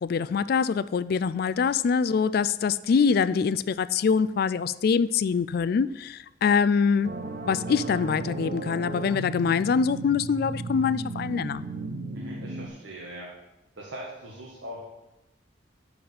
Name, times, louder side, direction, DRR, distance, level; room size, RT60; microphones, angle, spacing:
voice 1, 0.0-7.1 7.4-11.6, left 6 dB, 50° left, 17 dB, 0.3 m, -24 dB
sound 1, 7.0-12.7, right 3 dB, 45° right, 0.9 m, -35 dB
voice 2, 12.1-13.3 13.7-14.8, right 1 dB, 70° right, -4 dB, 1.6 m, -41 dB
7.7 x 5.9 x 6.8 m, 0.98 s
head